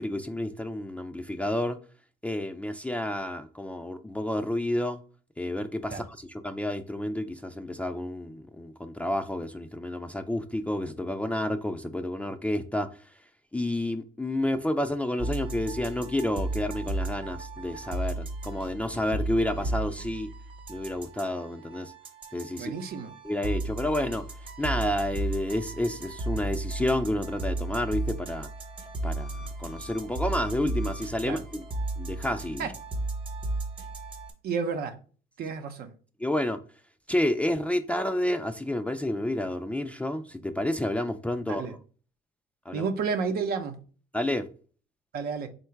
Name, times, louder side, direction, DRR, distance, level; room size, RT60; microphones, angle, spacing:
voice 1, 0.0-1.8 2.2-5.0 5.4-13.1 13.5-20.3 20.7-21.9 22.3-22.7 23.2-24.2 24.6-28.5 29.0-31.7 32.0-32.7 36.2-36.6 37.1-41.8 42.7-42.9 44.1-44.5, left 1 dB, 10° left, 0.3 m, -30 dB
sound 1, 15.2-34.3, right 2 dB, 30° right, 1.0 m, -34 dB
voice 2, 22.6-23.1 31.2-31.4 32.6-32.7 34.4-34.9 35.4-35.9 41.5-41.7 42.7-43.8 45.1-45.5, right 5 dB, 65° right, 0.7 m, -31 dB
3.8 x 2.2 x 4.4 m
cardioid pair, 110°, 17 cm